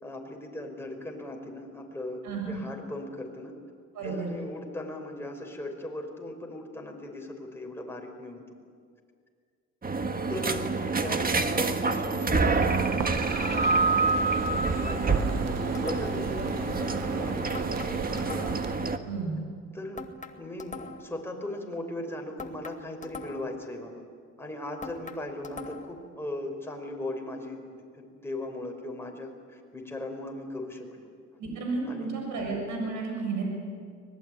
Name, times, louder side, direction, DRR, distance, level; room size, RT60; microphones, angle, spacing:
voice 1, 0.0-3.5 4.0-8.6 10.3-18.5 19.7-20.0 20.4-24.0 24.4-27.6 27.9-31.1 31.9-32.1, left 1 dB, 10° left, 1 dB, 5.4 m, -38 dB
voice 2, 2.2-2.6 3.9-4.3 19.1-19.4 31.4-33.5, right 4 dB, 75° right, 1 dB, 6.8 m, -32 dB
sound 1, 9.8-19.0, right 3 dB, 30° right, 1.7 m, -27 dB
sound 2, 13.0-18.8, right 9 dB, 60° right, 1.1 m, -38 dB
sound 3, 15.7-16.3 17.5-18.8 20.0-21.2 22.4-23.6 24.8-26.0, left 4 dB, 25° left, 2.0 m, -42 dB
24.5 x 20.0 x 9.6 m, 2.1 s
cardioid pair, 90°, 30 cm